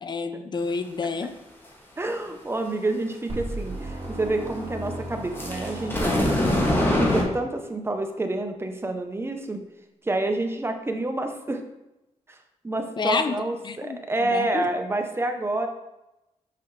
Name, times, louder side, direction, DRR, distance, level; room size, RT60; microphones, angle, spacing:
voice 1, 0.0-1.3 13.0-14.7, left 4 dB, 35° left, 10 dB, 0.6 m, -29 dB
voice 2, 2.0-6.3 7.0-9.6 10.0-11.6 12.3-12.4 12.6-15.7, right 2 dB, 20° right, 5 dB, 0.9 m, -28 dB
sound 1, 3.3-6.5, right 1 dB, 45° right, 2.0 m, -35 dB
sound 2, 5.4-7.2, left 1 dB, 15° left, 1.7 m, -22 dB
6.7 x 5.3 x 3.3 m, 0.94 s
cardioid pair, 85°, 13 cm